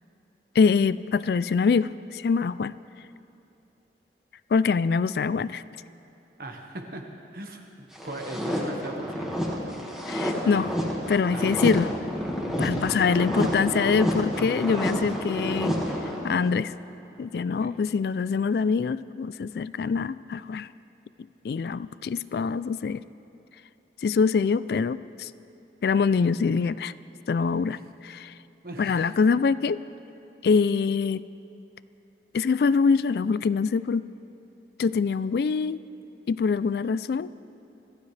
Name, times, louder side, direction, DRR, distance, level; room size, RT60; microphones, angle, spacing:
voice 1, 0.6-2.7 4.5-5.6 10.1-10.8 11.1-11.9 12.6-15.8 16.2-16.7 17.2-20.7 21.4-23.0 24.0-25.3 25.8-26.9 27.3-27.8 28.0-28.3 28.8-29.8 30.4-31.3 32.3-34.0 34.8-35.8 36.3-37.3, left 5 dB, 60° left, 16 dB, 0.3 m, -24 dB
voice 2, 6.4-10.2 11.3-11.7 13.2-13.8 14.3-15.1 17.6-17.8 27.7-27.8 28.6-29.1, right 1 dB, 55° right, 3 dB, 1.4 m, -39 dB
sound 1, 7.9-16.5, equal, 5° right, 1.7 m, -29 dB
25.0 x 15.0 x 3.3 m, 2.7 s
head